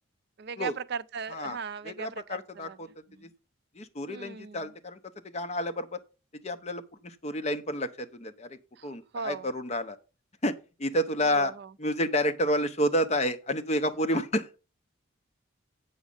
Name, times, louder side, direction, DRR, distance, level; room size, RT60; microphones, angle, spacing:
voice 1, 0.4-2.8 3.1-3.3 4.1-4.7 8.8-9.5 11.2-11.7, right 6 dB, 55° right, 0.5 m, -38 dB
voice 2, 1.8-2.9 3.2-3.3 3.8-5.0 5.2-6.0 6.4-10.0 10.4-11.5 11.8-14.6, equal, 30° left, 0.8 m, -30 dB
8.0 x 6.2 x 5.4 m
head